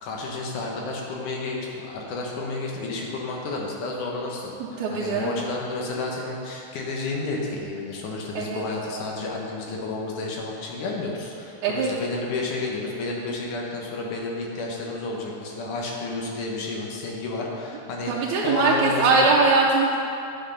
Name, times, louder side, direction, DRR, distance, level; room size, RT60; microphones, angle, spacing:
voice 1, 0.0-18.1 18.4-19.3, left 3 dB, 80° left, -1 dB, 2.6 m, -31 dB
voice 2, 4.6-5.4 8.4-8.6 11.6-11.9 18.1-20.0, right 3 dB, 80° right, -4 dB, 2.0 m, -21 dB
9.5 x 5.5 x 5.4 m, 2.7 s
omnidirectional pair, 3.5 m